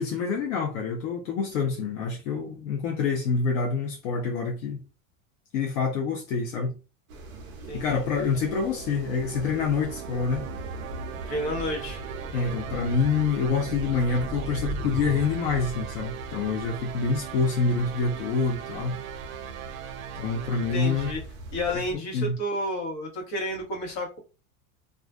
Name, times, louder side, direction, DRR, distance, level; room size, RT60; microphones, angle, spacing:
voice 1, 0.0-4.8 5.5-6.7 7.7-10.5 12.3-19.0 20.1-21.1 22.1-22.4, left 5 dB, 75° left, 0.7 m, -26 dB
sound 1, 7.1-21.9, right 2 dB, 35° right, 0.6 m, -39 dB
voice 2, 7.7-8.0 11.3-12.0 20.7-21.2 21.5-24.2, left 1 dB, 55° left, 1.1 m, -31 dB
sound 2, 8.3-21.1, right 11 dB, 80° right, 0.5 m, -40 dB
2.4 x 2.2 x 2.4 m
supercardioid pair, 165°, 40 cm